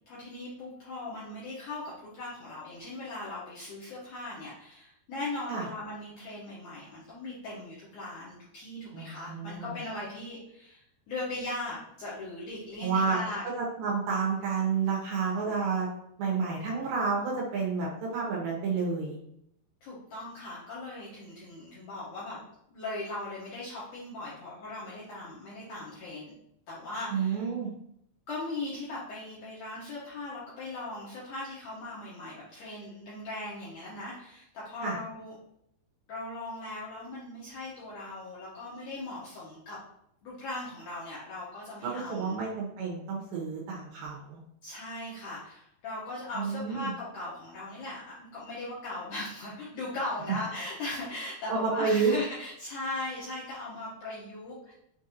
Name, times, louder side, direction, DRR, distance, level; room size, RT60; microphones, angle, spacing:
voice 1, 0.1-13.4 19.8-22.4 22.7-26.3 26.7-27.4 28.3-35.4 36.1-39.8 40.2-42.4 44.6-54.7, left 2 dB, 75° left, -8 dB, 1.9 m, -39 dB
voice 2, 8.9-9.8 12.8-13.2 13.6-15.9 16.2-19.2 27.1-27.7 34.8-35.0 41.8-44.4 46.4-46.9 51.5-52.1, right 5 dB, 75° right, -3 dB, 2.3 m, -30 dB
6.3 x 2.6 x 2.7 m, 0.74 s
omnidirectional pair, 4.6 m